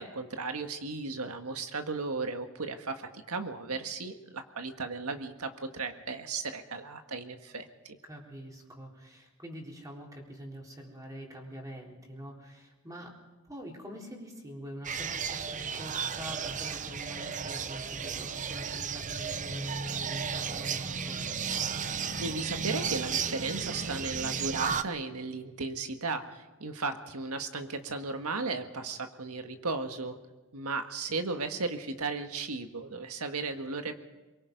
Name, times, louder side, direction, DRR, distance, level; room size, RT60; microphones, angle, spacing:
voice 1, 0.0-8.0 22.1-30.2 30.5-34.0, right 3 dB, 85° right, 6 dB, 1.7 m, -35 dB
voice 2, 8.1-13.2 13.5-21.2, equal, 15° right, -1 dB, 3.8 m, -45 dB
sound 1, 14.8-24.8, right 6 dB, 35° right, 0.7 m, -34 dB
23.5 x 22.5 x 5.3 m, 1.1 s
head